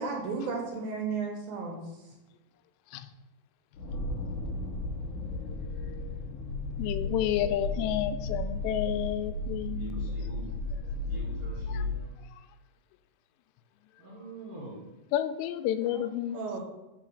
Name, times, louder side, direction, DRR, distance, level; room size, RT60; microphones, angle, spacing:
voice 1, 0.0-2.0 15.9-16.0 16.3-16.6, right 4 dB, 70° right, 0 dB, 2.6 m, -34 dB
sound 1, 3.7-12.0, left 2 dB, 70° left, 1.9 m, -34 dB
voice 2, 5.7-6.2 6.8-10.1 11.7-11.8 15.1-16.6, left 11 dB, 90° left, 10 dB, 2.7 m, -31 dB
voice 3, 9.7-10.5 11.0-12.1 14.0-15.0, right 1 dB, 45° right, -5 dB, 1.8 m, -44 dB
5.7 x 4.5 x 6.3 m, 1.0 s
omnidirectional pair, 4.9 m